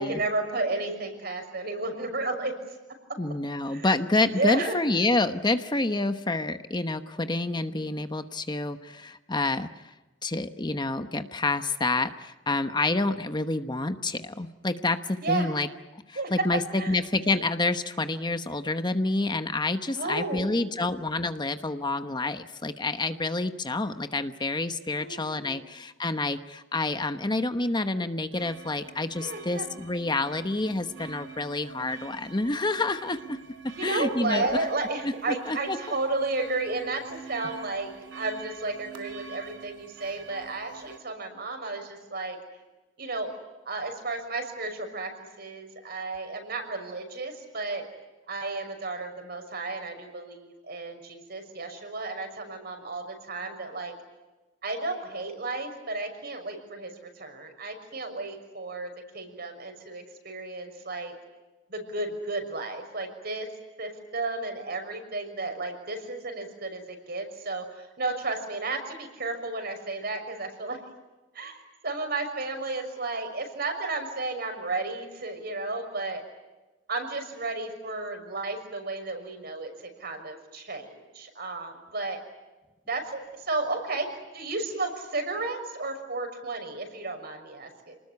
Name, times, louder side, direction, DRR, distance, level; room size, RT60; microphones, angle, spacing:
voice 1, 0.0-2.6 2.9-3.0 3.7-3.9 4.3-4.8 15.2-15.5 16.2-16.5 16.7-16.9 19.9-20.8 24.9-25.7 29.2-29.7 33.7-42.4 43.0-43.3 43.6-47.8 48.3-53.9 54.6-61.1 61.7-63.5 63.8-70.8 71.3-76.2 76.9-82.2 82.9-87.9, right 3 dB, 55° right, 5 dB, 6.2 m, -33 dB
voice 2, 3.2-9.9 10.2-15.7 16.1-33.4 33.8-34.5 35.0-35.8, left 2 dB, 25° left, 9 dB, 1.0 m, -28 dB
sound 1, 28.3-41.0, right 5 dB, 80° right, 2.7 m, -46 dB
29.0 x 20.0 x 9.8 m, 1.1 s
head